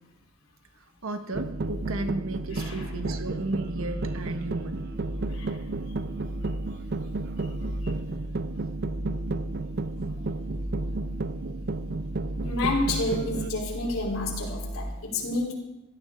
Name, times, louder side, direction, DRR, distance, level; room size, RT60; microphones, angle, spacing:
voice 1, 1.0-4.8, right 2 dB, 75° right, 1.3 m, -34 dB
sound 1, 1.3-14.9, right 1 dB, 15° right, 0.8 m, -36 dB
sound 2, 1.3-13.5, right 3 dB, 50° right, 0.6 m, -33 dB
voice 2, 2.5-2.9 5.3-5.6 7.8-7.9 12.4-15.5, left 2 dB, 85° left, 3.3 m, -30 dB
17.0 x 13.0 x 3.6 m
head